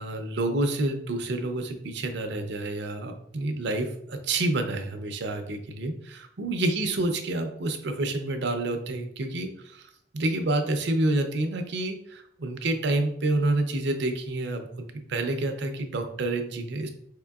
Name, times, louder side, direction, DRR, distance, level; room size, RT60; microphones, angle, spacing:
voice 1, 0.0-16.9, right 2 dB, 70° right, 6 dB, 0.6 m, -28 dB
4.8 x 3.7 x 2.3 m, 0.70 s
head